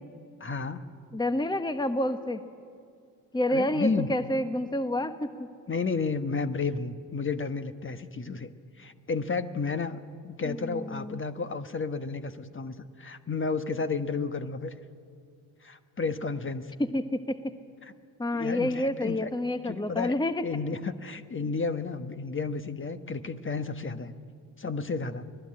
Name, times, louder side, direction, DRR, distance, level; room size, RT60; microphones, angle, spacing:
voice 1, 0.4-0.8 3.5-4.1 5.7-8.5 8.8-14.7 15.6-16.7 17.8-17.9 18.3-19.3 19.6-20.1 20.4-24.1 24.6-25.3, left 4 dB, 30° left, 10 dB, 1.4 m, -32 dB
voice 2, 1.1-2.4 3.3-5.5 10.4-11.2 16.8-17.5 18.2-20.4, left 1 dB, 10° left, 9 dB, 1.2 m, -29 dB
24.0 x 18.5 x 8.8 m, 2.3 s
hypercardioid pair, 55°, 41 cm